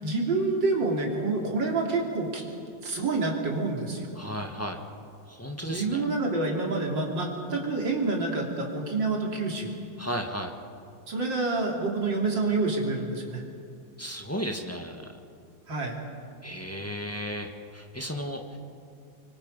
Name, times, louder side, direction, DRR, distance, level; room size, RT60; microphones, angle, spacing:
voice 1, 0.0-2.4 2.8-4.1 5.7-9.7 11.1-13.4 15.7-16.0, right 3 dB, 65° right, -1 dB, 3.7 m, -28 dB
voice 2, 4.1-4.8 5.3-6.1 10.0-10.5 14.0-15.1 16.4-18.6, equal, 10° left, 3 dB, 1.4 m, -34 dB
25.0 x 24.0 x 5.5 m, 2.3 s
omnidirectional pair, 2.1 m